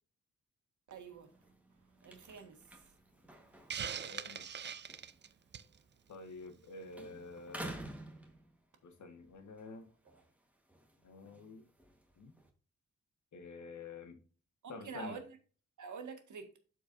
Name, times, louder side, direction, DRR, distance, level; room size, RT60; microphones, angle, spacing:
voice 1, 0.9-1.3 2.0-2.6 14.6-15.2 15.8-16.6, right 5 dB, 85° right, 1.8 m, -46 dB
sound 1, 1.0-6.6 6.9-8.9 9.4-12.5, right 1 dB, 5° right, 1.4 m, -52 dB
Hiss, 3.7-5.8, right 8 dB, 40° right, 0.4 m, -41 dB
voice 2, 4.0-4.4 6.1-7.8 8.8-9.9 11.0-11.7 12.2-12.3 13.3-14.2 14.7-15.2, left 3 dB, 80° left, 1.7 m, -49 dB
12.5 x 4.6 x 2.6 m
wide cardioid pair, 155°, 29 cm